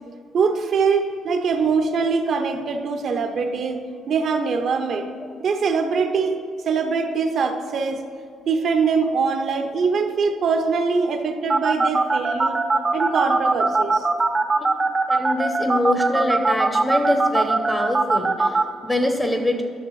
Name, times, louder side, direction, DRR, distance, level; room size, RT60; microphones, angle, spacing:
voice 1, 0.3-3.8 4.1-5.1 5.4-6.4 6.6-8.0 8.4-12.6 12.9-14.1, right 5 dB, 60° right, 6 dB, 0.8 m, -22 dB
sound 1, 11.5-18.6, right 3 dB, 30° right, 0.6 m, -19 dB
voice 2, 15.1-19.6, left 1 dB, 10° left, 4 dB, 0.8 m, -24 dB
12.0 x 6.1 x 3.2 m, 2.2 s
cardioid pair, 90°, 0 cm